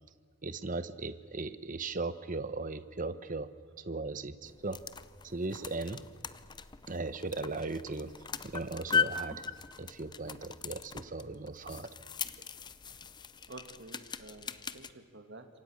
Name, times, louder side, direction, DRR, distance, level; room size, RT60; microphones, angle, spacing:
voice 1, 0.4-3.5 3.8-4.8 5.2-6.0 6.9-8.1 8.4-9.4 9.8-11.9, right 3 dB, 35° right, 13 dB, 1.0 m, -37 dB
sound 1, 4.5-14.9, left 6 dB, 20° left, 0.6 m, -39 dB
voice 2, 13.5-15.5, right 2 dB, 55° right, 7 dB, 2.3 m, -50 dB
27.5 x 24.0 x 6.5 m, 2.1 s
head